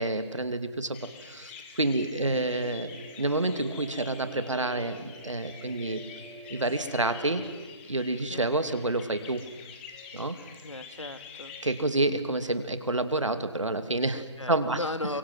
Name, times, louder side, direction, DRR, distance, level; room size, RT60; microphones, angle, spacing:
voice 1, 0.0-6.0 6.5-7.4 7.9-9.4 10.1-10.4 11.6-14.8, right 2 dB, 80° right, 10 dB, 2.6 m, -29 dB
sound 1, 0.9-11.8, left 6 dB, 25° left, 2.8 m, -47 dB
voice 2, 2.2-2.5 8.3-8.5 10.6-11.5 12.1-12.4 14.1-15.2, left 2 dB, 80° left, 11 dB, 2.3 m, -37 dB
sound 2, 2.2-7.7, right 4 dB, 15° right, 1.9 m, -46 dB
30.0 x 24.0 x 8.0 m, 1.3 s
figure-of-eight pair, 145°, 16 cm